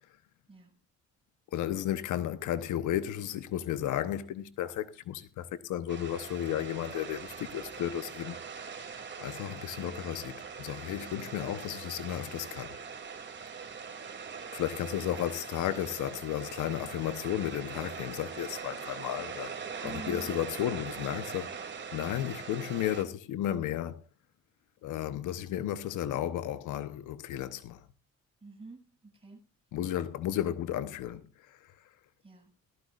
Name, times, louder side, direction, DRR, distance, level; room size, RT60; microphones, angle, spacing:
voice 1, 1.5-8.4 9.2-12.8 14.5-19.5 19.8-21.5 21.9-24.0 24.8-27.8 29.7-31.2, left 11 dB, 85° left, 1.0 m, -33 dB
sound 1, 5.9-23.0, right 6 dB, 40° right, 2.7 m, -42 dB
voice 2, 19.8-20.3 28.4-29.5 32.2-32.5, right 3 dB, 20° right, 7.1 m, -47 dB
18.0 x 13.5 x 2.5 m
cardioid pair, 90°, 30 cm